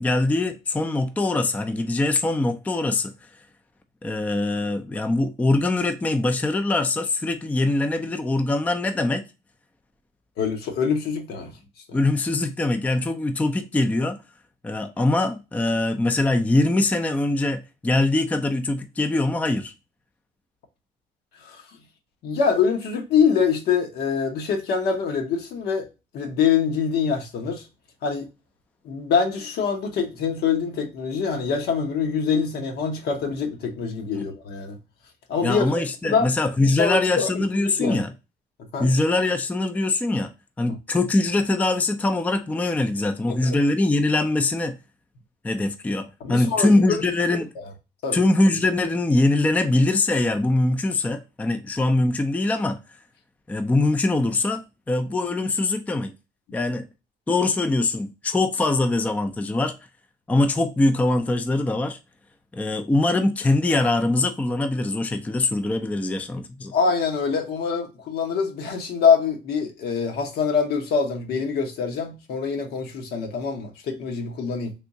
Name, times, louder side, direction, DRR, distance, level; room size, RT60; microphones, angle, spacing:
voice 1, 0.0-3.1 4.0-9.2 11.9-14.2 14.6-19.7 34.1-34.2 35.4-38.1 38.8-40.3 40.6-44.8 45.4-47.5 48.1-52.8 53.5-56.1 56.5-56.9 57.3-59.7 60.3-62.0 62.5-66.8, left 2 dB, 10° left, 0.4 m, -22 dB
voice 2, 10.4-11.5 11.9-12.0 21.4-21.6 22.2-25.9 26.1-27.6 28.0-28.3 28.8-34.8 35.3-36.3 36.6-38.0 38.7-38.9 40.7-40.8 43.3-43.6 46.2-47.0 47.6-47.7 48.0-48.2 66.7-74.7, left 6 dB, 70° left, 1.0 m, -24 dB
3.5 x 2.7 x 2.6 m
cardioid pair, 110°, 17 cm